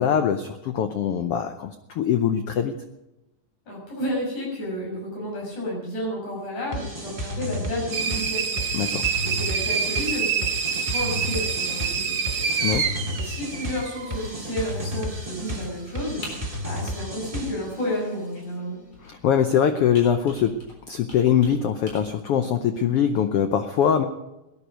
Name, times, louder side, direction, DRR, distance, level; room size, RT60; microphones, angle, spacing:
voice 1, 0.0-2.7 8.7-9.1 12.6-12.9 19.0-20.6 20.9-24.1, left 8 dB, 85° left, 8 dB, 1.3 m, -22 dB
voice 2, 3.7-8.6 9.2-12.5 13.2-18.8, left 1 dB, 65° left, -2 dB, 7.8 m, -31 dB
sound 1, 6.7-17.8, equal, 15° right, 1.3 m, -33 dB
sound 2, 7.9-14.3, right 6 dB, 50° right, 1.3 m, -27 dB
Computer keyboard, 14.6-22.0, left 1 dB, 40° left, 4.8 m, -46 dB
18.0 x 11.0 x 5.2 m, 0.95 s
omnidirectional pair, 3.6 m